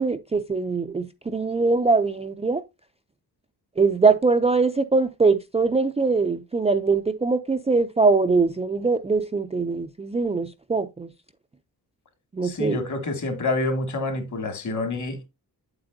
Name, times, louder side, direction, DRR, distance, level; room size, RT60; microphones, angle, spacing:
voice 1, 0.0-2.6 3.8-11.1 12.3-12.8, right 4 dB, 15° right, 0.4 m, -22 dB
voice 2, 12.4-15.3, left 2 dB, 50° left, 2.2 m, -27 dB
8.8 x 7.7 x 2.6 m
wide cardioid pair, 170°, 38 cm